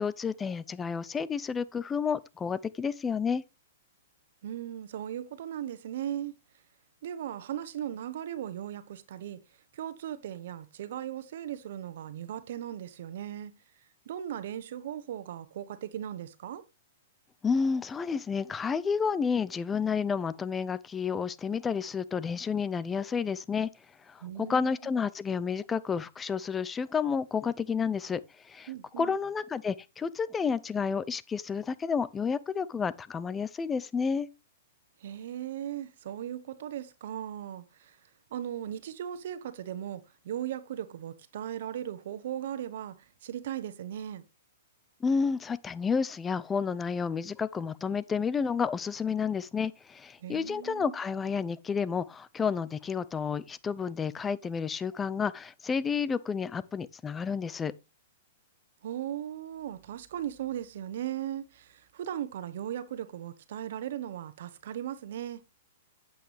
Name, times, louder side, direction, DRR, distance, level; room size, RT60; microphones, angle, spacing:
voice 1, 0.0-3.4 17.4-23.7 24.1-28.7 29.0-34.3 45.0-57.7, left 6 dB, 15° left, 0.5 m, -30 dB
voice 2, 4.4-6.3 7.0-9.4 9.7-13.5 14.0-16.6 24.2-24.9 28.7-29.1 35.0-38.0 38.3-44.2 50.2-51.0 58.8-65.4, right 10 dB, 65° right, 1.3 m, -37 dB
9.0 x 8.2 x 3.4 m
hypercardioid pair, 145°, 0 cm